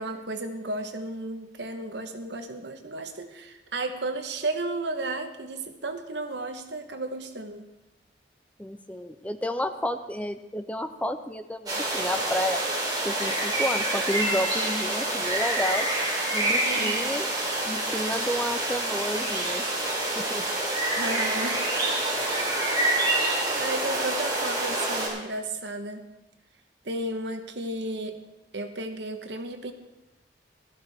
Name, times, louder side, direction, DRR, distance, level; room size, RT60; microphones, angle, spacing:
voice 1, 0.0-7.6 16.6-17.1 20.9-22.0 23.1-26.0 26.8-28.2 28.5-29.7, right 2 dB, 80° right, 6 dB, 1.2 m, -33 dB
voice 2, 8.6-12.6 13.0-15.9 16.3-17.3 17.7-19.6 20.2-20.4, equal, 10° left, 9 dB, 0.5 m, -31 dB
sound 1, 11.7-25.1, right 2 dB, 25° right, 3.4 m, -27 dB
16.0 x 13.0 x 3.5 m, 0.95 s
head